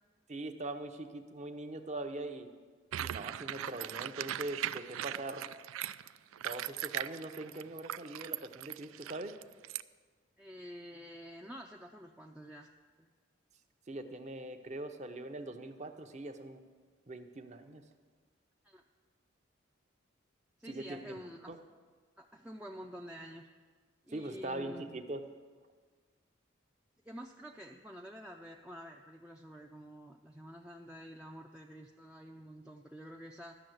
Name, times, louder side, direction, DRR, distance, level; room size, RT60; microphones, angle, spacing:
voice 1, 0.3-2.5 3.0-5.4 6.4-9.3 13.9-16.6 17.1-17.8 20.7-21.1 21.5-21.6 24.1-25.2, right 2 dB, 35° right, 7 dB, 0.7 m, -42 dB
sound 1, 2.9-9.8, right 12 dB, 90° right, 0.3 m, -39 dB
voice 2, 10.4-12.7 13.0-13.1 18.6-18.8 20.6-21.5 22.2-23.5 24.1-25.0 27.0-33.6, equal, 5° right, 1 dB, 0.4 m, -49 dB
12.5 x 6.6 x 7.9 m, 1.5 s
head